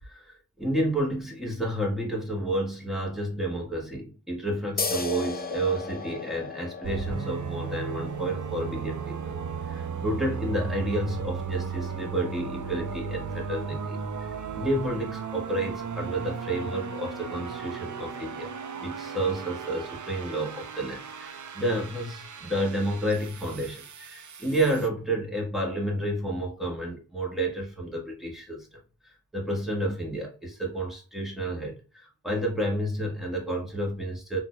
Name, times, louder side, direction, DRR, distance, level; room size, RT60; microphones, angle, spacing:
voice 1, 0.0-9.3 9.7-14.0 14.5-18.5 18.8-28.7 29.3-34.4, right 1 dB, ahead, 1.6 m, -30 dB
sound 1, 4.8-11.9, left 4 dB, 25° left, 0.5 m, -37 dB
sound 2, 6.8-24.9, right 6 dB, 50° right, 0.6 m, -36 dB
3.8 x 2.9 x 2.3 m
cardioid pair, 55°, 40 cm